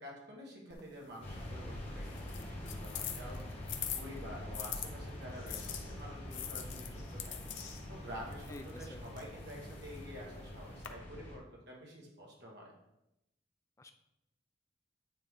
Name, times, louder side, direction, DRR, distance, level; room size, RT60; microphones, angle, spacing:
voice 1, 0.0-3.5 3.9-7.3 7.9-12.7, equal, 55° right, -3 dB, 1.5 m, -49 dB
sound 1, 0.7-4.9 5.5-10.9, left 10 dB, 65° left, 0.6 m, -45 dB
sound 2, 1.2-11.4, left 1 dB, 30° left, 1.4 m, -45 dB
sound 3, 5.2-6.5 6.8-8.3 10.8-11.1, left 5 dB, 90° left, 1.6 m, -57 dB
voice 2, 8.5-9.0 13.8-13.9, left 2 dB, 15° left, 7 dB, 0.3 m, -49 dB
8.9 x 3.5 x 3.7 m, 0.88 s
head